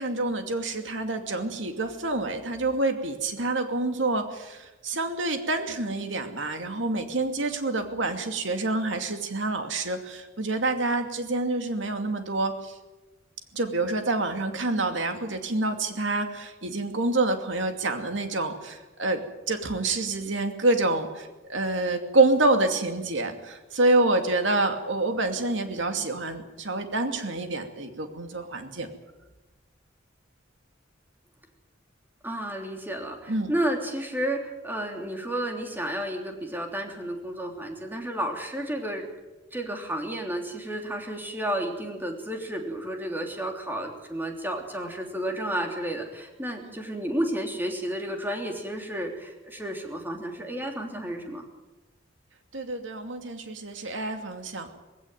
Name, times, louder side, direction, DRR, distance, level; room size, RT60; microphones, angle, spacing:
voice 1, 0.0-12.7 13.5-28.9 33.3-33.5 46.6-46.7 52.5-54.7, right 2 dB, 75° right, 6 dB, 2.6 m, -27 dB
voice 2, 32.2-39.1 39.5-51.4, right 1 dB, 10° right, 2 dB, 3.2 m, -32 dB
19.5 x 16.5 x 9.2 m, 1.1 s
head